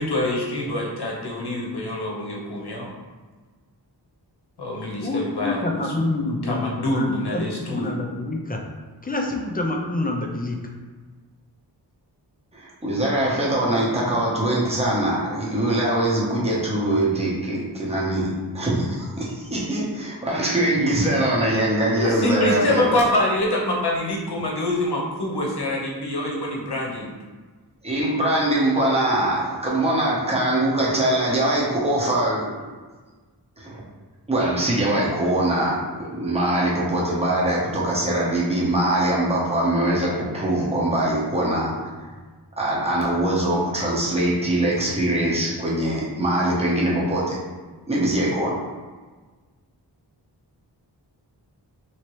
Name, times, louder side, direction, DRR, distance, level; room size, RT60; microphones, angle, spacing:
voice 1, 0.0-2.9 4.6-8.0 22.0-27.1, left 1 dB, 65° left, -2 dB, 0.8 m, -25 dB
voice 2, 5.0-8.6 9.0-10.6, left 2 dB, 20° left, 1 dB, 0.4 m, -27 dB
voice 3, 12.5-22.9 27.8-32.5 33.6-33.8 34.3-41.9 42.6-47.4 47.9-48.6, right 1 dB, 15° right, -5 dB, 0.9 m, -22 dB
3.0 x 2.8 x 3.1 m, 1.4 s
wide cardioid pair, 55°, 43 cm